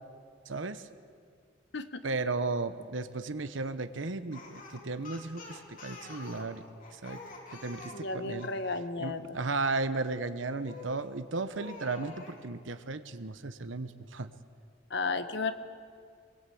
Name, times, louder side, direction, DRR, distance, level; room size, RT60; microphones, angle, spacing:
voice 1, 0.5-0.8 2.0-6.6 6.9-7.2 7.6-8.5 9.0-14.3, right 3 dB, 85° right, 10 dB, 1.1 m, -35 dB
Speech, 4.3-8.6 10.6-11.1 11.5-12.4, left 3 dB, 45° left, 4.0 m, -47 dB
voice 2, 7.9-9.4 14.9-15.5, left 3 dB, 65° left, 9 dB, 1.4 m, -33 dB
24.5 x 22.0 x 8.6 m, 2.1 s
head